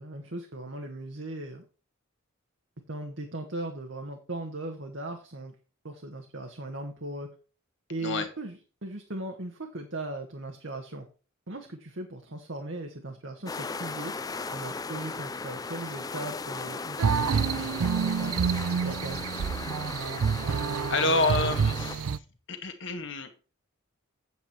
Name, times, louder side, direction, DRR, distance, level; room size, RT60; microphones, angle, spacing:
voice 1, 0.0-1.6 2.9-5.5 5.8-7.3 7.9-11.0 11.5-14.1 14.5-19.2, right 2 dB, 60° right, 4 dB, 1.2 m, -38 dB
sound 1, 13.5-22.0, left 4 dB, 15° left, 0.4 m, -37 dB
sound 2, 17.0-22.2, right 6 dB, 90° right, 0.4 m, -28 dB
voice 2, 19.9-20.4 20.9-22.2 22.5-23.3, left 2 dB, 55° left, 6 dB, 1.6 m, -29 dB
8.6 x 8.1 x 4.4 m, 0.36 s
head